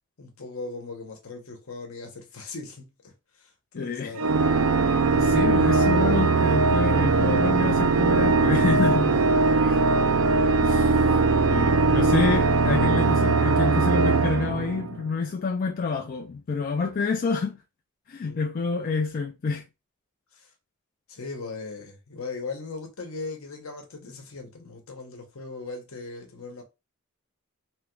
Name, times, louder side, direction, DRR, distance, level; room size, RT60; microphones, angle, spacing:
voice 1, 0.2-2.9 3.3-4.3 18.3-18.4 20.3-20.5 21.1-26.6, left 3 dB, 75° left, 0.9 m, -38 dB
voice 2, 3.8-4.1 5.1-9.8 10.6-17.6 18.1-19.6, left 4 dB, 40° left, 0.4 m, -28 dB
Organ, 4.2-15.1, right 4 dB, 70° right, 0.4 m, -21 dB
3.1 x 2.3 x 3.0 m
head